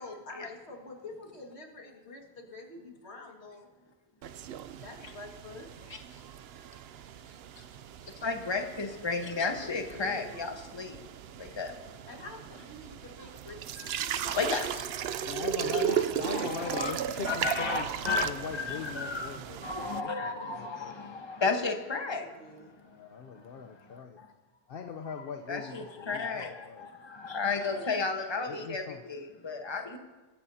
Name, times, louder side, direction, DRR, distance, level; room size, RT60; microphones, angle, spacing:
voice 1, 0.0-3.7 4.8-5.7 9.6-10.5 12.1-13.6 14.1-14.5 22.1-22.7 27.7-27.8 28.6-28.7 29.0-29.2, left 2 dB, 85° left, 1 dB, 2.2 m, -46 dB
sound 1, 4.2-20.0, right 9 dB, 70° right, 0.8 m, -36 dB
voice 2, 8.2-11.0 11.4-11.7 13.8-14.8 15.9-16.9 17.3-19.3 19.6-22.3 22.9-23.1 24.2-24.3 25.5-30.0, left 4 dB, 25° left, 4 dB, 1.2 m, -33 dB
voice 3, 15.2-19.6 20.0-21.0 22.9-24.2 24.7-26.9 28.5-29.1, left 6 dB, 65° left, 5 dB, 0.9 m, -40 dB
23.5 x 14.0 x 2.8 m, 1.2 s
omnidirectional pair, 1.1 m